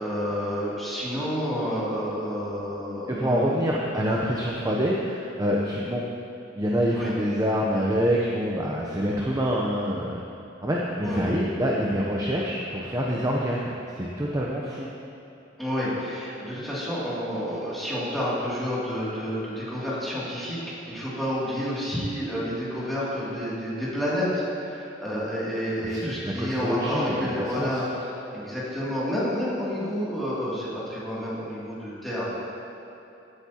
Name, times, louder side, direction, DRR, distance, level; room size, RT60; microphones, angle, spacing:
voice 1, 0.0-3.6 6.9-7.1 11.0-11.3 15.6-20.6 20.9-32.4, equal, ahead, -9 dB, 2.6 m, -29 dB
voice 2, 3.1-6.0 6.6-10.2 10.6-14.9 25.8-27.8, equal, 20° right, -3 dB, 0.7 m, -26 dB
15.5 x 8.3 x 2.9 m, 2.9 s
head